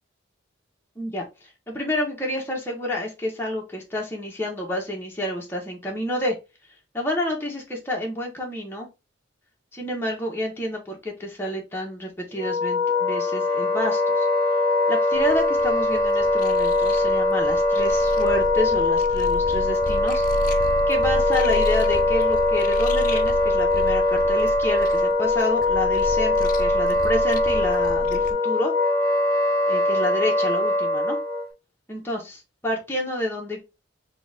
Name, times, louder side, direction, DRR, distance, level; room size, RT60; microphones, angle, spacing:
voice 1, 0.9-6.3 6.9-8.9 9.7-14.3 14.9-20.2 20.9-28.7 29.7-31.2 31.9-33.6, left 1 dB, 10° left, -1 dB, 1.2 m, -29 dB
Wind instrument woodwind instrument, 12.4-31.5, left 2 dB, 35° right, 1.1 m, -22 dB
sound 1, 15.1-28.3, left 2 dB, 45° left, 0.4 m, -33 dB
3.9 x 2.5 x 3.5 m, 0.27 s
head